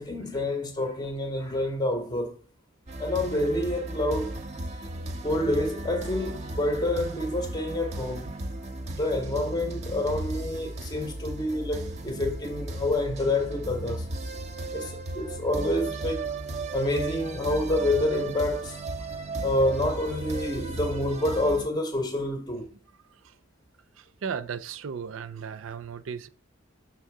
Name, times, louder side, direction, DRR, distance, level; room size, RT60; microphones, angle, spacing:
voice 1, 0.0-2.3 3.0-4.3 5.2-8.3 8.9-14.1 14.7-16.3 16.7-18.8 19.4-22.7, left 1 dB, 20° left, 0.6 m, -28 dB
sound 1, 2.9-21.7, right 2 dB, 35° right, 0.6 m, -35 dB
voice 2, 24.0-26.3, right 6 dB, 80° right, 0.4 m, -36 dB
5.8 x 3.7 x 4.6 m
head